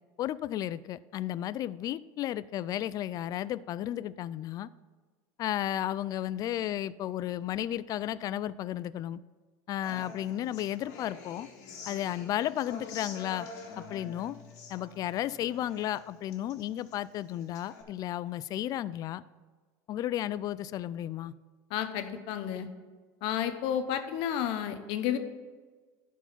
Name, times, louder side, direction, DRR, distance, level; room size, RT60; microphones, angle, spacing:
voice 1, 0.2-4.7 5.4-9.2 9.7-11.5 11.9-13.5 13.8-14.4 14.7-19.2 19.9-21.3, left 12 dB, 45° left, 19 dB, 0.3 m, -33 dB
Human voice / Acoustic guitar, 9.8-17.8, left 4 dB, 80° left, 1.8 m, -47 dB
voice 2, 21.7-22.7 23.2-25.2, left 10 dB, 65° left, 9 dB, 0.9 m, -31 dB
11.0 x 4.6 x 5.7 m, 1.4 s
supercardioid pair, 110°, 9 cm